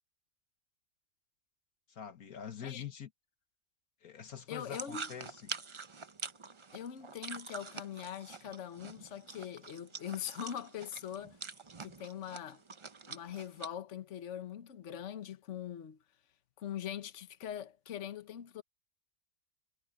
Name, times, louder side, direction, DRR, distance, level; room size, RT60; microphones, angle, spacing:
voice 1, 1.9-3.1 4.0-5.5, left 8 dB, 70° left, 1.7 m, -45 dB
voice 2, 4.5-5.1 6.7-11.4 11.8-12.6 13.1-16.0 16.6-18.6, left 9 dB, 55° left, 1.3 m, -42 dB
sound 1, 4.7-13.7, right 4 dB, 35° right, 0.5 m, -46 dB
omnidirectional pair, 1.6 m